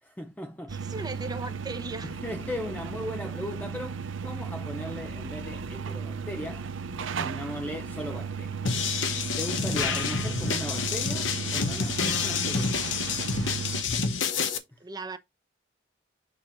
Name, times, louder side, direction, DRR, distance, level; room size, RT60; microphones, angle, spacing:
voice 1, 0.0-0.9 2.0-6.7 7.2-8.6 9.4-12.8 14.7-14.8, left 1 dB, 10° left, 0.5 m, -37 dB
voice 2, 0.7-2.1 14.8-15.2, right 2 dB, 20° right, 0.9 m, -37 dB
sound 1, 0.7-13.8, right 5 dB, 85° right, 0.6 m, -35 dB
sound 2, 8.7-14.6, left 5 dB, 75° left, 1.0 m, -28 dB
6.8 x 5.9 x 2.6 m
head